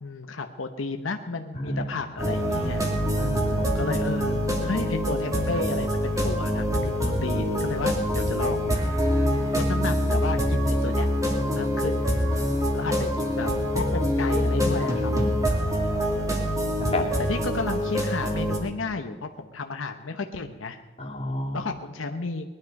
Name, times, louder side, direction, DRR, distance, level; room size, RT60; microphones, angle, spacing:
voice 1, 0.0-3.1 3.6-8.7 9.5-11.1 11.5-12.0 12.7-15.1 15.8-16.2 17.3-20.8 21.5-22.5, left 3 dB, 85° left, 5 dB, 1.0 m, -33 dB
voice 2, 1.5-1.9 2.2-2.9 3.2-4.0 6.2-6.4 8.1-8.5 12.3-12.7 16.8-17.1 21.0-21.7, left 1 dB, 30° left, 0 dB, 2.6 m, -32 dB
sound 1, 2.2-18.6, equal, 15° right, 2.4 m, -25 dB
20.0 x 12.0 x 5.4 m, 1.3 s
head